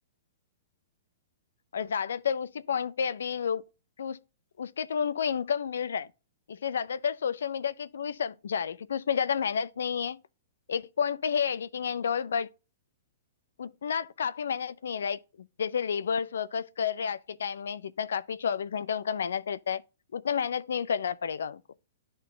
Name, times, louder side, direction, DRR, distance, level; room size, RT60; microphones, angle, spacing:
voice 1, 1.7-3.6 4.0-4.2 4.6-6.1 6.5-10.2 10.7-12.5 13.6-15.2 15.6-19.8 20.1-21.6, left 7 dB, 75° left, 0.4 m, -30 dB
11.0 x 3.9 x 2.6 m
hypercardioid pair, 120°, 0 cm